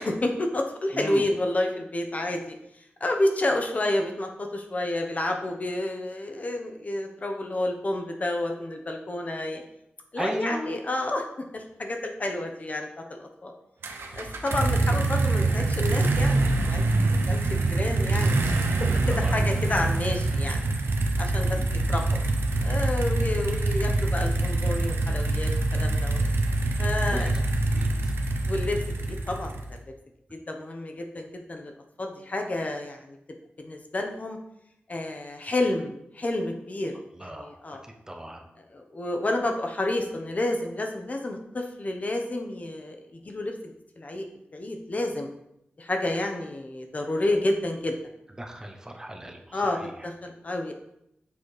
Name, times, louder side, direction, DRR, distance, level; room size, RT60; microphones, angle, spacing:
voice 1, 0.0-2.5 3.0-9.6 10.1-11.3 11.5-13.5 14.1-20.7 21.2-21.6 21.9-22.0 22.6-26.2 26.8-27.3 28.5-28.8 29.1-29.5 30.3-31.7 32.0-33.2 33.6-34.4 34.9-36.9 37.2-37.8 38.7-44.3 44.5-45.3 45.8-48.0 49.5-50.7, left 1 dB, 40° left, 3 dB, 0.9 m, -30 dB
voice 2, 0.9-1.3 10.2-10.7 18.7-18.8 19.1-19.4 21.5-21.9 27.1-27.3 27.7-28.1 37.2-37.6 38.1-38.4 48.4-49.8, right 1 dB, 15° right, 3 dB, 0.8 m, -36 dB
sound 1, 13.8-29.8, right 2 dB, 80° right, 0.9 m, -25 dB
7.1 x 4.1 x 4.8 m, 0.79 s
wide cardioid pair, 105°, 4 cm